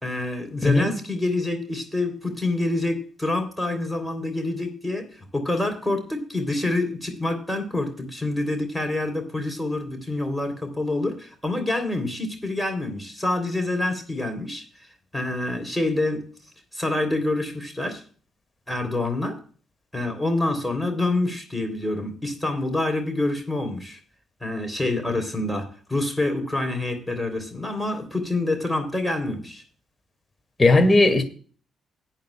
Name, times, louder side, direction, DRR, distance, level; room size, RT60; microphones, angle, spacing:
voice 1, 0.0-14.6 15.1-16.2 16.7-18.0 18.7-19.4 19.9-24.0 24.4-29.6, left 2 dB, 5° left, 3.2 m, -27 dB
voice 2, 0.6-0.9 30.6-31.2, left 2 dB, 25° left, 1.9 m, -17 dB
17.5 x 9.1 x 2.2 m
figure-of-eight pair, 40°, 0 cm